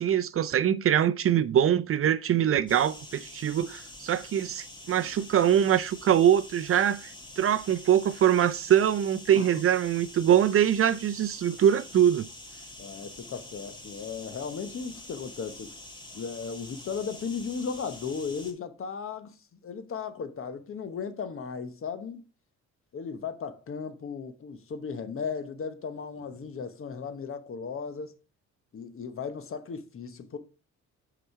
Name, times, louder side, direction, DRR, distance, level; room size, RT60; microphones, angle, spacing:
voice 1, 0.0-7.1 7.4-12.3, right 10 dB, 45° right, 0.5 m, -23 dB
sound 1, 2.7-18.5, left 2 dB, 15° left, 2.1 m, -46 dB
voice 2, 12.8-15.7 16.1-19.4 19.6-22.2 22.9-28.1 28.7-30.4, left 5 dB, 45° left, 1.0 m, -36 dB
6.1 x 4.9 x 4.6 m
cardioid pair, 90°, 30 cm